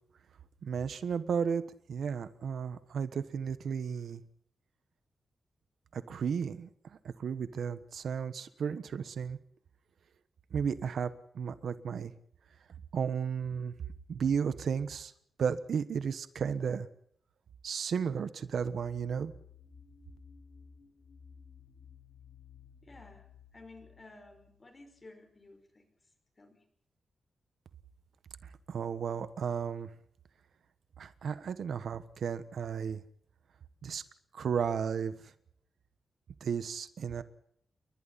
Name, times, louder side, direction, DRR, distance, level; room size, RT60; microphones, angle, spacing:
voice 1, 0.6-1.6 1.9-4.2 5.9-9.4 10.5-12.1 12.9-13.7 14.1-15.1 15.4-16.9 17.6-19.3 28.4-29.9 31.0-33.0 33.8-34.0 34.3-35.3 36.4-37.2, right 7 dB, 65° right, 12 dB, 1.3 m, -34 dB
sound 1, 18.5-25.1, left 6 dB, 45° left, 3.1 m, -56 dB
voice 2, 22.8-23.3 23.5-25.9 26.4-26.6, left 2 dB, 25° left, 6 dB, 5.4 m, -54 dB
30.0 x 23.0 x 4.2 m, 0.68 s
wide cardioid pair, 165°, 0 cm